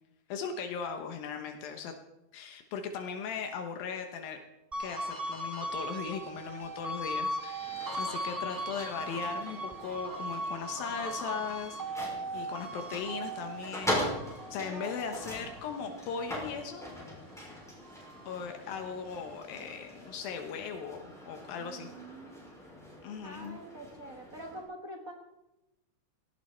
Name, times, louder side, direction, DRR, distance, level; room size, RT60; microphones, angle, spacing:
voice 1, 0.3-1.9 2.3-4.4 4.8-14.1 14.5-16.9 18.3-21.9 23.0-23.6, left 6 dB, 80° left, 5 dB, 2.9 m, -38 dB
sound 1, 4.7-17.3 17.7-19.4, right 1 dB, 25° right, 0.4 m, -39 dB
sound 2, 7.5-24.6, equal, ahead, 5.7 m, -42 dB
voice 2, 14.6-14.9 21.6-22.4 23.2-25.1, right 1 dB, 65° right, 2 dB, 0.8 m, -45 dB
18.0 x 16.5 x 4.5 m, 0.92 s
omnidirectional pair, 4.1 m